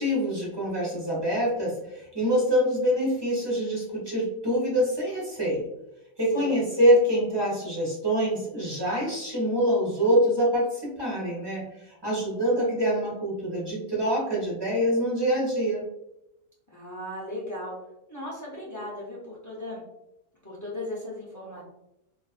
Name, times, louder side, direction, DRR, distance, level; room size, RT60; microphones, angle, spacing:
voice 1, 0.0-5.6 6.2-15.8, equal, 25° right, -5 dB, 0.6 m, -25 dB
voice 2, 16.7-17.7 18.1-19.8 20.4-21.6, left 1 dB, 30° left, -7 dB, 0.3 m, -37 dB
2.4 x 2.4 x 2.4 m, 0.85 s
omnidirectional pair, 1.6 m